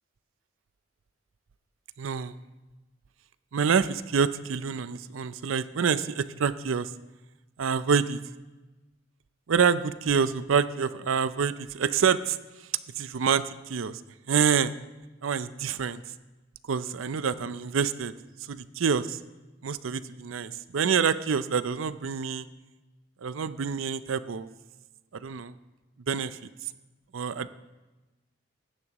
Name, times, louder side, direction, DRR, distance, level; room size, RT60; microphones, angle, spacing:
voice 1, 2.0-2.3 3.5-6.9 7.6-8.2 9.5-12.4 13.0-14.0 14.3-14.7 15.2-16.0 16.7-18.1 18.5-19.2 19.6-22.5 23.2-24.5 25.1-25.5 26.1-26.4 27.1-27.5, right 6 dB, 85° right, 14 dB, 0.5 m, -27 dB
16.0 x 10.5 x 3.0 m, 1.1 s
head